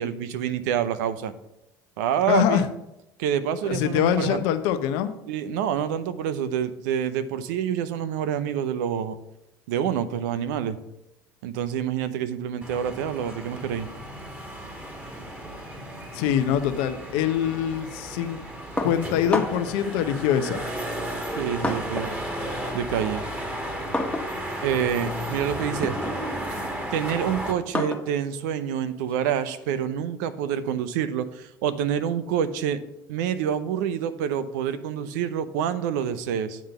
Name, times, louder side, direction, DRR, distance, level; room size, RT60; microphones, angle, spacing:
voice 1, 0.0-1.3 2.0-2.7 3.2-4.4 5.3-9.2 9.7-10.8 11.4-13.9 21.4-22.2 22.7-23.2 24.6-26.1 26.9-32.8 33.1-36.6, right 9 dB, 80° right, 12 dB, 0.7 m, -27 dB
voice 2, 2.3-2.7 3.7-5.1 16.1-18.4 18.8-20.6, left 10 dB, 70° left, 10 dB, 0.8 m, -24 dB
sound 1, 12.6-27.5, right 1 dB, 20° right, 2.1 m, -34 dB
sound 2, 18.8-19.8 20.7-22.2 22.5-29.9, left 2 dB, 10° left, 1.4 m, -33 dB
9.4 x 3.8 x 6.8 m, 0.86 s
hypercardioid pair, 70°, 10 cm